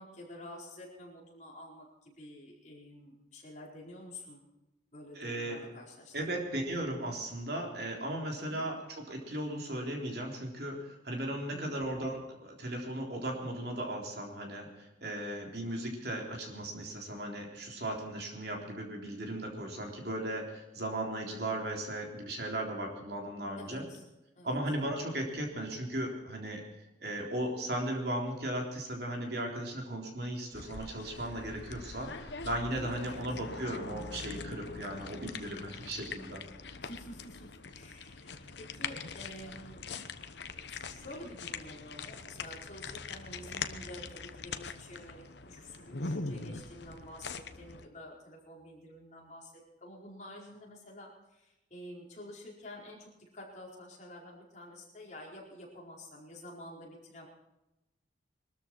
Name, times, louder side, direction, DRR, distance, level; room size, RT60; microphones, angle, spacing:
voice 1, 0.0-4.4 4.9-6.4 8.4-8.6 11.5-11.9 23.6-24.0 24.4-24.6 33.0-33.2 36.8-39.8 40.7-57.3, left 1 dB, 40° left, -2 dB, 4.5 m, -49 dB
voice 2, 5.2-5.6 6.1-23.9 24.4-36.4, right 1 dB, 55° right, 1 dB, 3.7 m, -37 dB
sound 1, 30.5-47.9, left 4 dB, 65° left, 1.0 m, -43 dB
22.0 x 13.5 x 4.6 m, 0.93 s
head